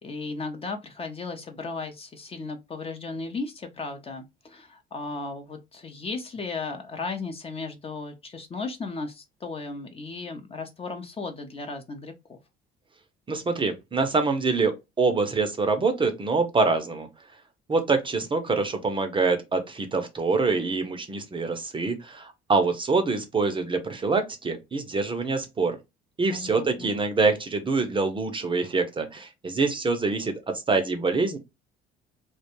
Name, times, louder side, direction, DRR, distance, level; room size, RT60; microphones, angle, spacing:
voice 1, 0.0-12.4 26.3-26.9, left 3 dB, 30° left, 0.6 m, -35 dB
voice 2, 13.3-17.1 17.7-25.8 26.2-30.3 30.7-31.4, right 4 dB, 25° right, 0.5 m, -25 dB
2.3 x 2.2 x 2.9 m
cardioid pair, 90°, 20 cm